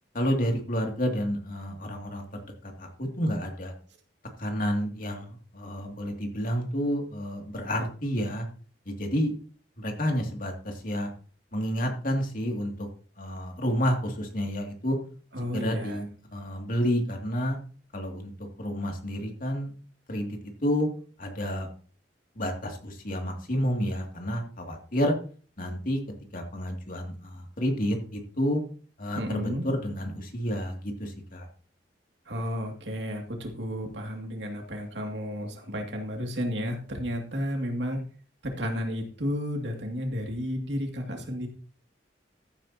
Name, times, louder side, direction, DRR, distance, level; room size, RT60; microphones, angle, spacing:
voice 1, 0.1-3.7 4.4-8.5 8.9-9.3 9.8-11.1 11.5-12.9 13.2-15.0 15.5-17.6 17.9-18.3 18.6-19.7 20.1-20.9 21.2-21.7 22.3-25.1 25.6-26.0 26.3-28.6 29.0-31.5, equal, 50° left, 2 dB, 2.6 m, -30 dB
voice 2, 15.3-16.1 29.1-29.6 32.3-38.0 38.4-41.5, equal, 70° right, 2 dB, 2.5 m, -32 dB
14.5 x 9.5 x 2.9 m, 0.40 s
head